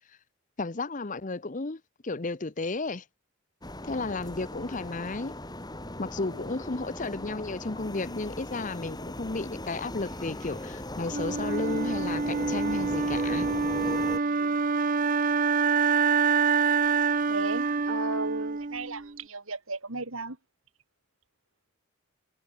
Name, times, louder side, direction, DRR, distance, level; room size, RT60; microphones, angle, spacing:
voice 1, 0.6-3.0 3.9-5.3 6.0-13.5, left 3 dB, 35° left, 0.8 m, -33 dB
sound 1, 3.6-14.2, left 1 dB, 20° left, 3.9 m, -38 dB
Wind instrument woodwind instrument, 11.1-19.1, right 5 dB, 40° right, 0.6 m, -26 dB
voice 2, 14.2-14.6 17.3-20.4, right 3 dB, 75° right, 3.7 m, -35 dB
head